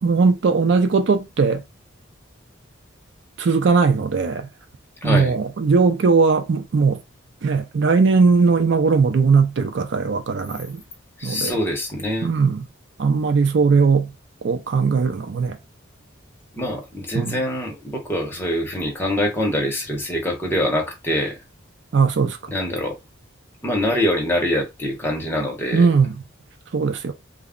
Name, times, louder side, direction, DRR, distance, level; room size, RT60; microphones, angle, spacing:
voice 1, 0.0-1.6 3.4-4.5 5.0-7.0 7.4-10.8 11.2-11.6 12.2-12.7 13.0-14.1 14.4-15.6 17.1-17.4 21.9-22.4 25.7-26.2 26.7-27.1, right 4 dB, 60° right, 0.4 m, -19 dB
voice 2, 5.0-5.3 11.2-12.3 16.5-21.4 22.5-23.0 23.6-25.9, left 1 dB, 10° left, 0.8 m, -24 dB
2.3 x 2.0 x 3.6 m
head